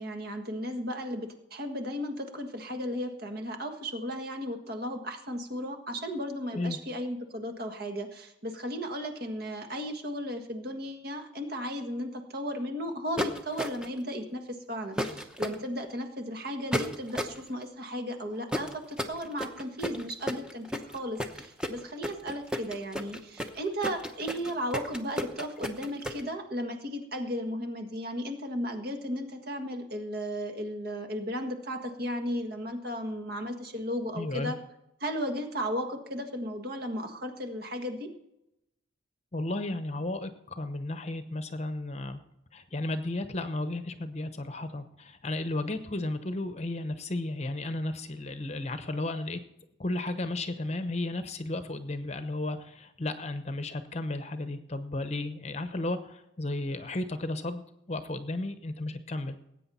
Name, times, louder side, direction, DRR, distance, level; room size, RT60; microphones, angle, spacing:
voice 1, 0.0-34.6 35.0-38.1, equal, 50° right, 5 dB, 1.6 m, -35 dB
sound 1, 13.2-14.0 15.0-15.6 16.7-17.4 18.5-26.2, equal, 5° right, 0.8 m, -33 dB
voice 2, 34.1-34.5 39.3-42.2 42.5-49.4 49.8-59.4, left 2 dB, 35° left, 10 dB, 0.9 m, -34 dB
19.5 x 8.8 x 4.2 m, 0.86 s
head